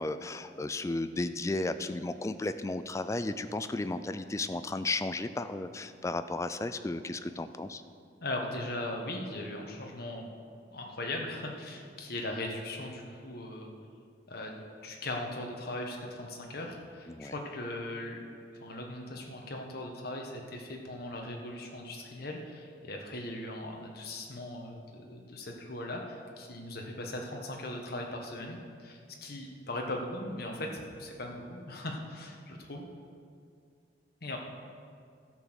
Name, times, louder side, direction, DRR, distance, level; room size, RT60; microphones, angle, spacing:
voice 1, 0.0-7.8 17.1-17.3, left 2 dB, 15° left, 11 dB, 0.3 m, -34 dB
voice 2, 8.2-10.3 10.7-13.7 14.3-18.2 18.6-32.9 34.2-34.4, left 1 dB, 60° left, 1 dB, 1.4 m, -39 dB
13.0 x 6.2 x 6.4 m, 2.3 s
head